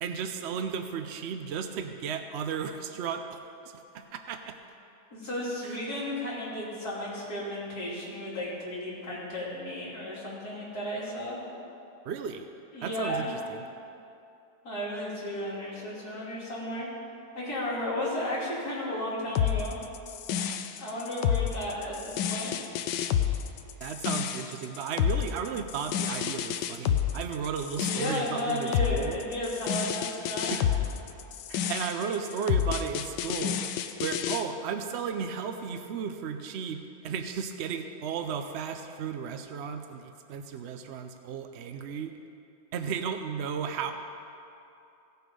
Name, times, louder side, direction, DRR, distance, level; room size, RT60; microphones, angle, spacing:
voice 1, 0.0-3.4 3.9-4.6 5.6-5.8 12.0-12.5 12.8-13.6 23.8-29.2 30.5-30.7 31.5-33.6 34.0-42.1 42.7-43.9, right 7 dB, 70° right, 7 dB, 0.6 m, -34 dB
voice 2, 5.1-11.4 12.7-13.3 14.6-16.9 17.4-19.8 20.8-22.5 27.9-30.5, left 1 dB, 60° left, -8 dB, 3.5 m, -34 dB
sound 1, 19.4-34.4, left 9 dB, 85° left, 1.3 m, -29 dB
17.0 x 6.8 x 5.3 m, 2.7 s
omnidirectional pair, 1.8 m